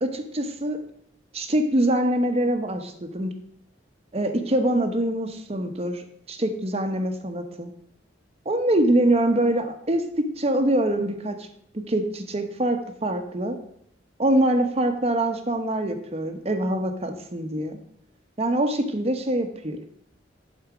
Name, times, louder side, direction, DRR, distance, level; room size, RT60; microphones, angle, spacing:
voice 1, 0.0-0.8 1.3-3.3 4.1-7.7 8.4-11.5 11.7-13.6 14.2-17.8 18.4-19.8, right 1 dB, 35° right, 6 dB, 0.9 m, -24 dB
11.0 x 4.3 x 4.9 m, 0.69 s
head